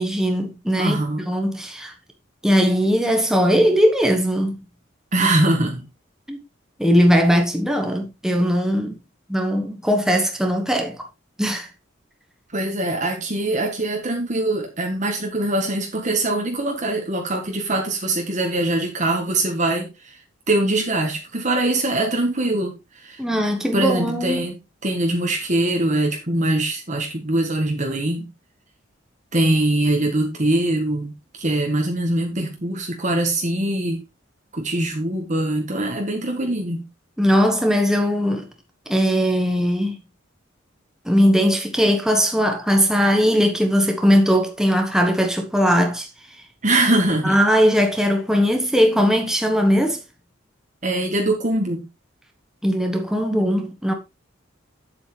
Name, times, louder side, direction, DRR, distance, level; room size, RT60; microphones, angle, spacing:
voice 1, 0.0-1.9 2.4-4.6 6.3-6.4 6.8-8.9 9.3-11.0 11.4-11.7 23.2-24.4 37.2-38.4 38.9-40.0 41.0-46.1 47.2-50.0 52.6-53.9, equal, 5° right, 1.3 m, -19 dB
voice 2, 0.8-1.3 5.1-5.9 12.5-20.2 20.5-23.2 23.7-24.6 24.8-28.3 29.3-34.0 34.5-36.9 46.6-47.4 50.8-51.9, right 1 dB, 40° right, 1.5 m, -22 dB
8.3 x 7.9 x 3.3 m
head